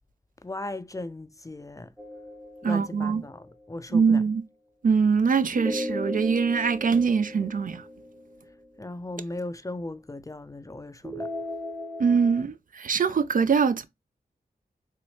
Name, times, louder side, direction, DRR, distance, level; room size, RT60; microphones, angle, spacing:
voice 1, 0.4-1.9 2.6-4.2 8.8-11.3, left 2 dB, 20° left, 0.4 m, -37 dB
sound 1, 2.0-3.5 5.5-8.7 11.0-12.4, left 1 dB, 5° right, 0.8 m, -36 dB
voice 2, 2.6-3.2 3.9-4.4 4.8-7.8 12.0-13.9, right 5 dB, 55° right, 0.4 m, -23 dB
4.0 x 2.0 x 3.1 m
cardioid pair, 40°, 16 cm